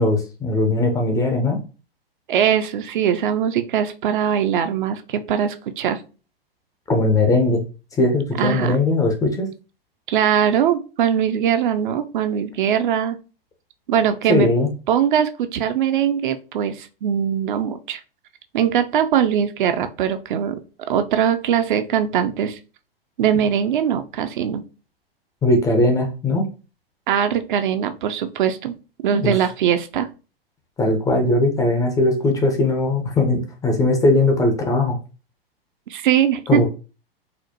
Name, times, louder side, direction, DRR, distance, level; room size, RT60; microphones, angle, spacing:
voice 1, 0.0-1.6 6.9-7.6 7.9-9.5 14.3-14.7 25.4-26.4 29.1-29.4 30.8-35.0 36.5-36.7, left 2 dB, 10° left, 3 dB, 0.4 m, -19 dB
voice 2, 2.3-6.0 8.4-8.8 10.1-13.2 13.9-14.5 14.9-18.0 18.5-20.6 20.9-22.6 23.2-24.6 27.1-28.7 29.0-30.1 35.9-36.7, right 9 dB, 55° right, 9 dB, 0.5 m, -21 dB
4.2 x 2.1 x 2.7 m, 0.34 s
figure-of-eight pair, 105°, 30 cm